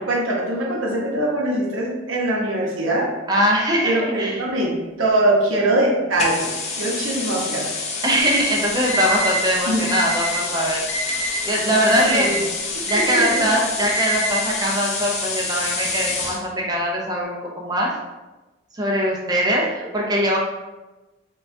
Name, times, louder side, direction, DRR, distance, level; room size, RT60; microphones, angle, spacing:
voice 1, 0.0-3.1 3.8-4.7 5.0-7.7 9.7-9.9 12.0-12.4 12.7-13.4, right 1 dB, 85° right, -1 dB, 0.8 m, -22 dB
voice 2, 3.3-4.4 8.0-10.8 11.2-12.3 12.9-17.9 18.7-19.7 19.9-20.4, equal, 20° right, -1 dB, 0.4 m, -21 dB
sound 1, 6.2-16.4, left 4 dB, 35° left, 0.5 m, -28 dB
Alarm, 8.2-8.3 8.9-9.4 9.9-10.4 10.9-11.4 11.9-12.4 12.9-13.4 13.9-14.4, left 1 dB, 80° left, 0.9 m, -26 dB
4.5 x 2.3 x 2.6 m, 1.1 s
head